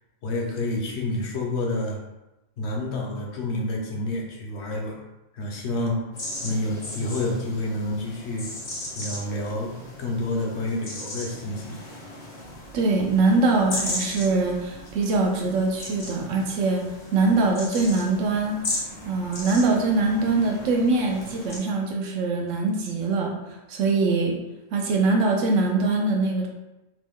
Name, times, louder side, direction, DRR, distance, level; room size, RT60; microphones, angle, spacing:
voice 1, 0.2-2.0 2.6-5.0 5.3-6.0 6.4-8.5 8.9-9.7 10.0-11.8, left 2 dB, 65° left, 0 dB, 0.9 m, -28 dB
sound 1, 6.1-21.6, left 1 dB, 40° left, 0.7 m, -37 dB
voice 2, 12.7-18.6 19.1-23.3 23.7-24.4 24.7-26.5, right 3 dB, 80° right, 1 dB, 0.9 m, -23 dB
3.0 x 2.1 x 3.4 m, 0.98 s
omnidirectional pair, 1.3 m